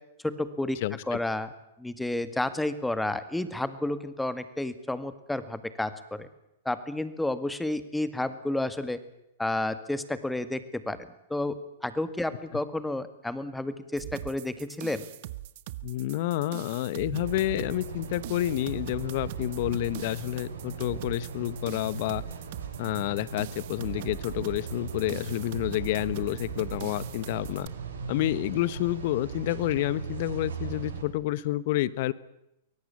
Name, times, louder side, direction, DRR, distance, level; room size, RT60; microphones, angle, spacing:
voice 1, 0.2-1.5 1.8-6.3 6.7-9.0 9.4-11.0 11.3-15.1, left 1 dB, 5° left, 12 dB, 1.9 m, -31 dB
voice 2, 0.8-1.2 15.8-22.2 22.8-27.7 28.1-32.1, left 15 dB, 55° left, 18 dB, 1.2 m, -29 dB
sound 1, 14.0-27.7, right 16 dB, 55° right, 1.1 m, -41 dB
sound 2, 17.1-31.0, right 5 dB, 80° right, 7.4 m, -39 dB
23.5 x 18.0 x 8.7 m, 0.85 s
hypercardioid pair, 115°, 0 cm